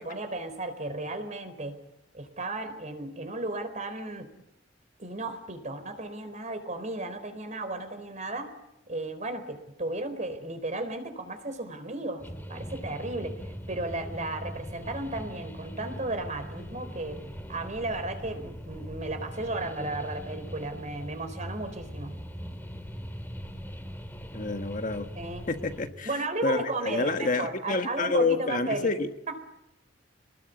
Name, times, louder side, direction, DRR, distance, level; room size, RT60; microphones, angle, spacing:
voice 1, 0.0-1.8 2.1-4.3 5.0-8.5 8.9-17.2 17.5-22.1 25.2-25.4 26.0-28.9, right 2 dB, 40° right, 9 dB, 4.2 m, -34 dB
sound 1, 12.2-25.9, equal, 10° left, 2.3 m, -41 dB
voice 2, 24.3-25.1 25.5-29.1, left 3 dB, 45° left, 7 dB, 1.5 m, -28 dB
28.0 x 20.5 x 9.4 m, 0.85 s
head